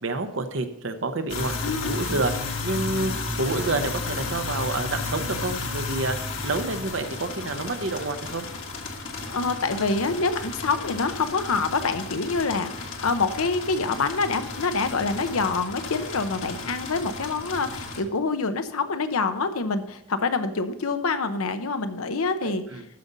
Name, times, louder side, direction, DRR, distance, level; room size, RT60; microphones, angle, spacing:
voice 1, 0.0-6.2 6.4-8.4 22.4-22.9, right 3 dB, 60° right, 8 dB, 0.9 m, -29 dB
sound 1, 1.3-18.0, left 3 dB, 65° left, 1.5 m, -33 dB
voice 2, 1.6-2.2 9.3-22.6, left 4 dB, 85° left, 9 dB, 0.8 m, -26 dB
13.5 x 5.3 x 4.0 m, 0.87 s
head